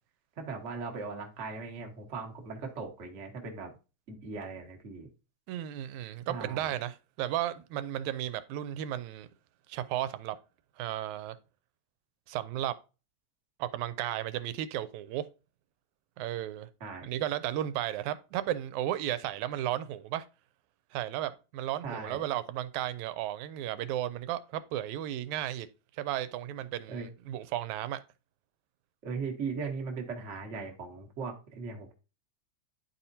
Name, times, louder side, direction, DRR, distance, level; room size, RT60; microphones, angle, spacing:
voice 1, 0.4-3.7 4.1-5.1 6.3-6.7 16.8-17.1 21.8-22.3 26.9-27.1 29.0-31.9, right 4 dB, 45° right, 0.9 m, -38 dB
voice 2, 5.5-9.3 9.7-10.4 10.8-11.4 12.3-12.8 13.6-15.3 16.2-16.7 17.0-20.3 20.9-25.7 26.0-28.0, right 12 dB, 85° right, 1.9 m, -34 dB
11.0 x 4.3 x 2.7 m
omnidirectional pair, 3.3 m